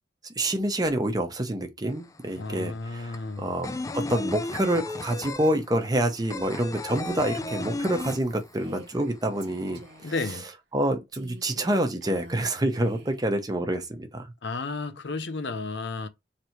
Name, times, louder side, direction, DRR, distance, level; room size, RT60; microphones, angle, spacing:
voice 1, 0.4-3.8 4.1-10.1 10.7-14.3, right 1 dB, 20° right, 0.8 m, -27 dB
sound 1, 1.9-2.0 2.2-8.8 9.1-9.2 9.5-10.3, left 2 dB, 20° left, 0.3 m, -34 dB
voice 2, 2.4-3.5 10.0-10.4 14.4-16.1, left 3 dB, 70° left, 0.7 m, -32 dB
Female speech woman speaking, 6.9-9.2 9.4-10.2 11.1-13.3, right 2 dB, 70° right, 0.9 m, -46 dB
3.3 x 2.8 x 4.4 m
head